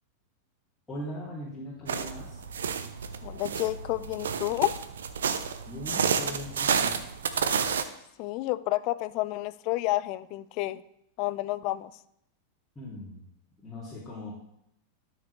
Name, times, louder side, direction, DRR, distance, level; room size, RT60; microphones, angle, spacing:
voice 1, 0.9-2.4 5.7-7.0 12.7-13.2 13.6-14.3, left 1 dB, 10° left, -9 dB, 2.7 m, -39 dB
sound 1, 1.9-7.8, right 6 dB, 65° right, 0.6 m, -30 dB
voice 2, 3.2-4.7 8.2-10.8 11.2-11.9, left 17 dB, 45° left, 16 dB, 0.4 m, -30 dB
12.0 x 6.6 x 3.3 m, 0.76 s
figure-of-eight pair, 90°, 0 cm